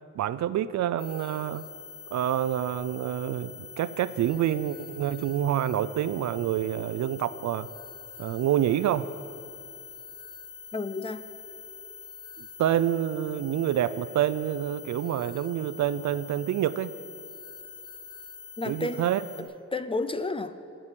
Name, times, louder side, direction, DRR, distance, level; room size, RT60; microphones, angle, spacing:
voice 1, 0.2-1.6 2.1-7.7 8.2-9.1 12.4-16.9 18.7-19.2, right 11 dB, 70° right, 15 dB, 0.5 m, -27 dB
sound 1, 1.0-19.4, left 6 dB, 60° left, 2.5 m, -45 dB
voice 2, 10.7-11.2 18.6-19.1 19.4-20.5, left 2 dB, 20° left, 12 dB, 0.6 m, -31 dB
11.0 x 9.0 x 9.8 m, 2.6 s
cardioid pair, 95°, 29 cm